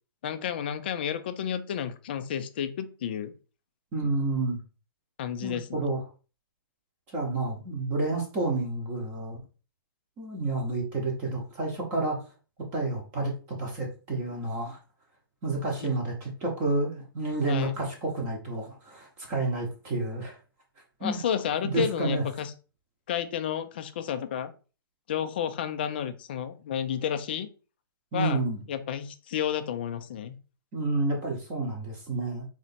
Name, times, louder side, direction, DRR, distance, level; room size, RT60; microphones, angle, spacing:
voice 1, 0.2-3.3 5.2-5.9 15.8-15.9 17.5-17.8 21.0-22.5 23.1-24.5 25.1-27.5 28.1-28.4 28.7-30.3, left 9 dB, 25° left, 10 dB, 0.3 m, -31 dB
voice 2, 3.9-4.6 5.4-6.0 7.1-9.4 10.2-12.2 12.7-14.8 15.4-20.4 21.0-21.2 21.6-22.2 28.1-28.6 30.7-32.4, right 2 dB, 15° right, 0 dB, 0.8 m, -30 dB
3.9 x 3.1 x 4.1 m, 0.35 s
hypercardioid pair, 170°, 13 cm